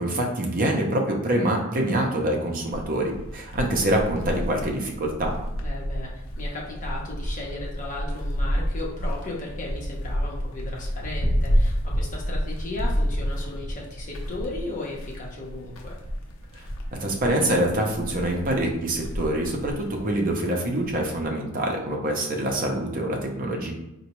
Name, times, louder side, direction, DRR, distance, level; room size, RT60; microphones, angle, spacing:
voice 1, 0.0-5.3 16.5-16.7 17.0-23.7, right 1 dB, 40° right, 1 dB, 0.6 m, -25 dB
sound 1, 2.7-21.3, equal, 75° left, 0.6 m, -30 dB
voice 2, 5.6-16.0, left 2 dB, 40° left, -3 dB, 0.9 m, -36 dB
4.0 x 2.2 x 3.0 m, 0.90 s
head